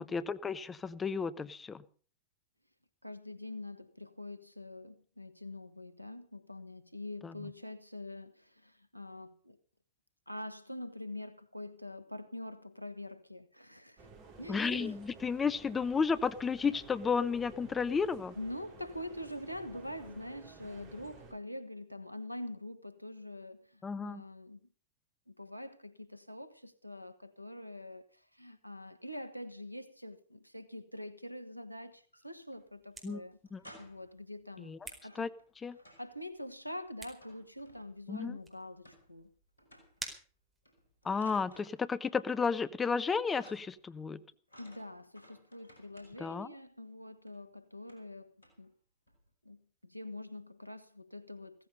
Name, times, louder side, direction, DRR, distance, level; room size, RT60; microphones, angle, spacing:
voice 1, 0.0-1.8 7.2-7.5 14.5-18.3 23.8-24.2 33.0-33.2 33.5-33.6 34.6-34.8 35.1-35.3 35.6-35.8 38.1-38.4 41.0-44.2 46.2-46.5, left 5 dB, 15° left, 1.1 m, -33 dB
voice 2, 3.0-9.6 10.3-14.1 14.4-15.0 18.4-24.6 25.3-33.4 33.8-34.8 35.0-35.3 36.0-39.3 44.6-48.3 48.6-48.7 49.4-51.7, left 1 dB, 90° right, 1.2 m, -45 dB
sound 1, 14.0-21.3, right 4 dB, 40° right, 5.8 m, -54 dB
sound 2, 31.9-32.6 32.9-33.0 33.3-34.2 34.8-36.2 36.4-38.2 38.8-39.3 39.6-40.1 40.6-42.3 42.6-43.0 43.3-43.9 44.5-46.4 47.3-47.4 47.8-48.1 48.4-48.7 49.1-49.3, equal, 80° left, 5.6 m, -59 dB
sound 3, 32.5-41.1, right 3 dB, 10° right, 4.6 m, -53 dB
16.5 x 15.0 x 5.4 m
figure-of-eight pair, 90°, 0 cm